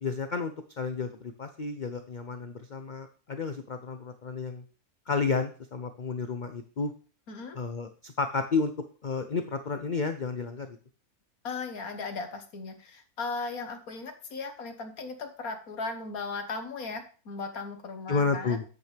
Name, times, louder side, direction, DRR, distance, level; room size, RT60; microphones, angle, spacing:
voice 1, 0.0-4.6 5.1-6.9 7.5-8.7 9.0-10.8 18.1-18.6, left 4 dB, 45° left, 7 dB, 0.6 m, -31 dB
voice 2, 7.3-7.6 11.4-18.6, left 4 dB, 70° left, 6 dB, 1.8 m, -37 dB
9.4 x 8.2 x 3.4 m, 0.38 s
omnidirectional pair, 1.6 m